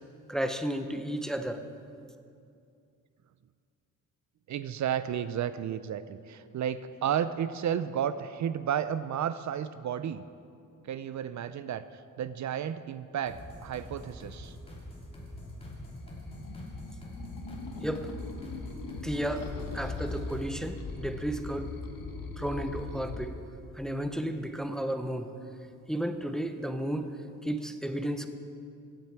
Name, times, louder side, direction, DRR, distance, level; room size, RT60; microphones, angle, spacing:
voice 1, 0.3-1.6 17.8-18.1 19.0-21.7 22.4-23.3 23.7-25.3 25.9-27.1 27.4-28.3, right 1 dB, ahead, 8 dB, 0.5 m, -33 dB
voice 2, 4.5-10.2 10.8-11.8 12.2-14.6, right 9 dB, 60° right, 13 dB, 0.4 m, -32 dB
sound 1, 13.3-20.8, equal, 15° left, 2.9 m, -45 dB
sound 2, 15.3-23.2, left 3 dB, 80° left, 1.3 m, -40 dB
15.5 x 9.0 x 4.5 m, 2.4 s
wide cardioid pair, 135°, 33 cm